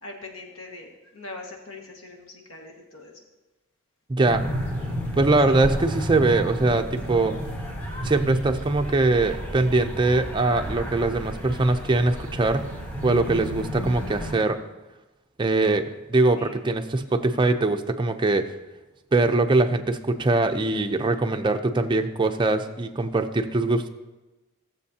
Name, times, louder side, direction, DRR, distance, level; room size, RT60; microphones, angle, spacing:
voice 1, 0.0-3.1 5.5-5.6 16.4-16.6, left 2 dB, 70° left, 1 dB, 1.7 m, -42 dB
voice 2, 4.1-4.5 5.2-7.4 8.0-12.7 13.0-14.6 15.4-18.5 19.1-23.9, right 2 dB, 20° right, 6 dB, 0.5 m, -22 dB
sound 1, 4.2-14.3, equal, 10° left, 2.4 m, -32 dB
17.0 x 7.3 x 2.8 m, 1.1 s
head